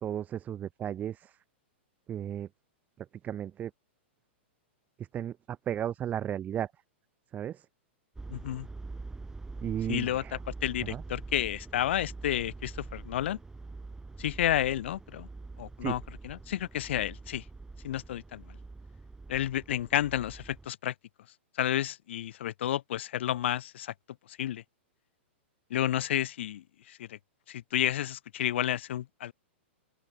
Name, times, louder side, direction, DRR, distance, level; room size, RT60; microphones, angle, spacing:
voice 1, 0.0-1.4 2.1-2.5 3.0-3.7 5.0-6.7 7.3-7.7 9.6-10.4 10.8-11.0 15.8-16.0, right 10 dB, 25° right, 1.8 m, -35 dB
sound 1, 8.2-20.7, right 3 dB, 10° right, 4.0 m, -45 dB
voice 2, 8.3-8.7 9.9-13.4 14.2-15.3 15.6-17.4 17.8-18.6 19.3-20.9 21.6-23.9 24.3-24.6 25.7-27.2 27.5-29.3, left 12 dB, 70° left, 1.4 m, -31 dB
open air
hypercardioid pair, 130°, 7 cm